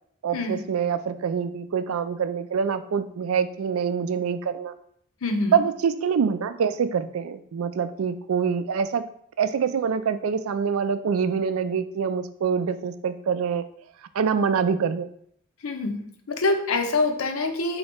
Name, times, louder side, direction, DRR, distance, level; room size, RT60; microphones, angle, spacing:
voice 1, 0.2-4.7 5.5-9.0 9.4-13.6 14.1-15.1, right 6 dB, 85° right, 11 dB, 0.4 m, -25 dB
voice 2, 5.2-5.6 15.6-17.8, left 2 dB, 80° left, 6 dB, 0.7 m, -25 dB
4.3 x 2.8 x 4.3 m, 0.67 s
head